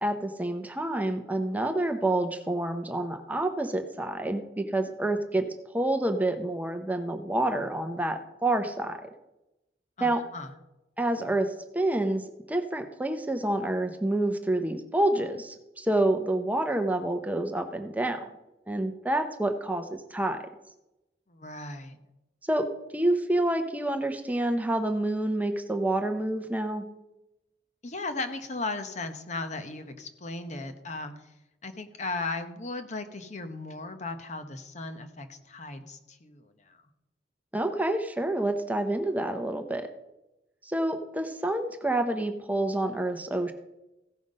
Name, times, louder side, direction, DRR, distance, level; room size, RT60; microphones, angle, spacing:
voice 1, 0.0-5.4 5.7-9.1 10.0-10.2 11.0-12.2 12.5-18.3 18.7-20.4 22.5-26.8 37.5-39.9 40.6-43.5, right 1 dB, 10° right, 6 dB, 0.7 m, -28 dB
voice 2, 10.0-10.5 21.3-22.0 27.8-31.1 31.6-36.8, left 3 dB, 40° left, 8 dB, 0.9 m, -36 dB
15.5 x 5.8 x 5.3 m, 0.94 s
head